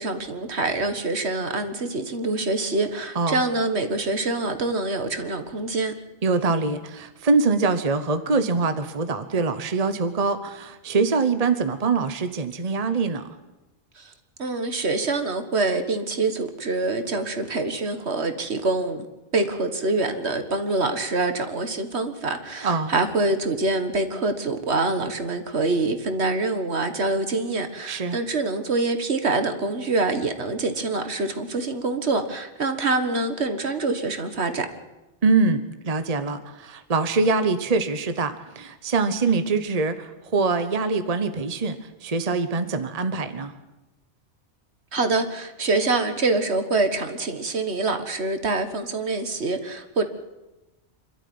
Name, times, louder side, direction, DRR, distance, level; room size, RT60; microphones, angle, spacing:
voice 1, 0.0-5.9 14.0-14.1 14.4-19.1 19.3-34.7 44.9-50.0, right 3 dB, 65° right, 8 dB, 1.9 m, -25 dB
voice 2, 6.2-13.3 22.6-22.9 27.9-28.2 35.2-43.5, right 4 dB, 35° right, 9 dB, 1.1 m, -24 dB
26.5 x 13.0 x 9.5 m, 1.1 s
omnidirectional pair, 1.2 m